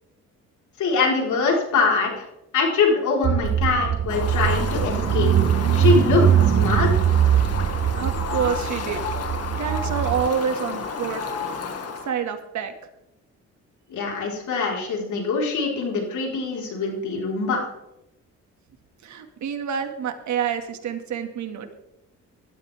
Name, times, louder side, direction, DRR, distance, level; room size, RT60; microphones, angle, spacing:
voice 1, 0.8-2.3 2.5-5.3 5.7-6.3 6.6-7.0 13.9-17.6, left 4 dB, 75° left, -1 dB, 4.8 m, -23 dB
Car / Engine, 3.2-10.3, right 9 dB, 40° right, 0.6 m, -21 dB
Fowl, 4.1-12.1, left 5 dB, 55° left, 2.2 m, -31 dB
voice 2, 7.9-9.0 9.6-11.2 12.0-12.7 19.0-21.7, right 7 dB, 70° right, 6 dB, 2.3 m, -27 dB
19.5 x 13.0 x 3.7 m, 0.87 s
cardioid pair, 90°, 30 cm